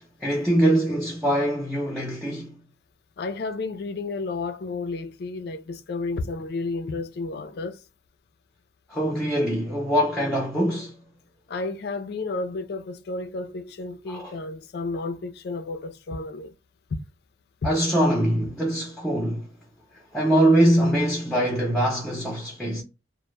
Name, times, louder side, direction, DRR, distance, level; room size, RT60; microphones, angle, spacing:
voice 1, 0.2-2.6 8.9-11.0 14.1-14.4 17.6-19.5 20.1-22.8, right 1 dB, 5° left, 0.5 m, -23 dB
voice 2, 3.2-7.8 11.5-16.5 17.6-17.7, left 3 dB, 60° left, 0.3 m, -32 dB
2.1 x 2.0 x 3.0 m
head